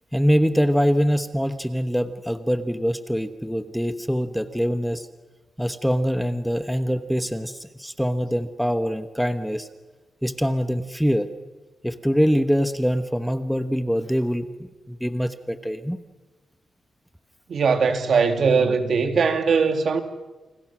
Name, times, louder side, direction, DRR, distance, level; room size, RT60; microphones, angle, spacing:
voice 1, 0.1-5.1 5.6-9.7 10.2-11.3 11.8-16.0, equal, ahead, 1.2 m, -24 dB
voice 2, 17.5-20.0, right 5 dB, 60° right, 2.8 m, -20 dB
29.5 x 28.5 x 6.2 m
wide cardioid pair, 120°, 0 cm